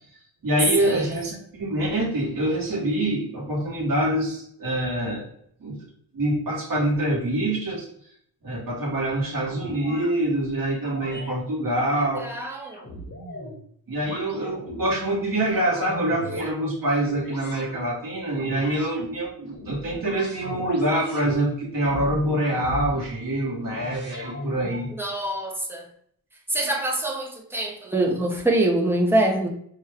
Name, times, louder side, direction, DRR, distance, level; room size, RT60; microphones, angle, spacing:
voice 1, 0.4-5.3 5.6-5.8 6.1-7.9 8.4-12.3 13.9-24.9, right 1 dB, 55° right, -4 dB, 1.2 m, -25 dB
sound 1, 9.4-10.1 10.8-11.3 11.8-13.6 14.0-14.9 15.4-16.5 17.2-17.8 18.4-19.0 19.5-21.3 21.8-23.1 23.6-24.9, left 1 dB, 45° left, 1.8 m, -37 dB
voice 2, 12.2-12.8 25.0-25.9 26.5-29.5, right 1 dB, 5° right, -1 dB, 0.7 m, -24 dB
5.6 x 2.3 x 3.4 m, 0.66 s
wide cardioid pair, 155°, 41 cm